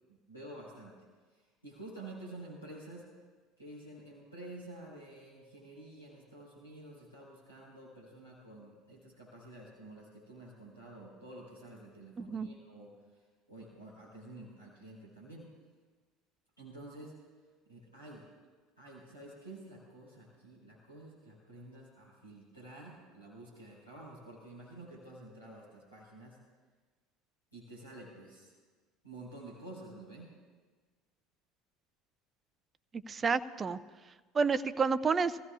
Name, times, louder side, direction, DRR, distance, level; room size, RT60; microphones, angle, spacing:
voice 1, 0.1-1.0 1.3-3.1 3.6-15.5 16.6-17.2 17.7-18.3 18.8-26.4 27.5-28.5 29.0-30.3, right 1 dB, 90° left, -7 dB, 4.0 m, -50 dB
voice 2, 12.2-12.5 33.1-33.8 34.3-35.4, right 5 dB, 25° right, 15 dB, 0.5 m, -29 dB
25.5 x 15.5 x 2.4 m, 1.4 s
figure-of-eight pair, 65°, 0 cm